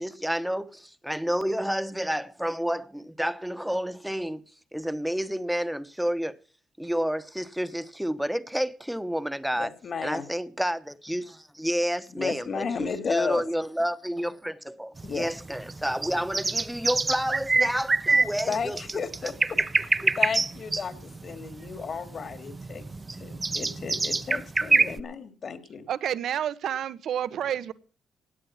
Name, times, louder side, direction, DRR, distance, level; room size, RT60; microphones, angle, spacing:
voice 1, 0.0-4.4 4.7-6.4 6.8-9.7 10.0-18.8 20.0-20.1, equal, 5° right, 1.1 m, -30 dB
voice 2, 9.6-10.3 12.2-13.4 15.0-15.3 18.5-22.9 23.2-25.9, left 5 dB, 50° left, 2.2 m, -33 dB
sound 1, 15.0-25.0, right 3 dB, 25° right, 0.8 m, -26 dB
voice 3, 25.9-27.7, right 9 dB, 70° right, 1.1 m, -29 dB
17.5 x 9.7 x 5.8 m
cardioid pair, 90°, 0 cm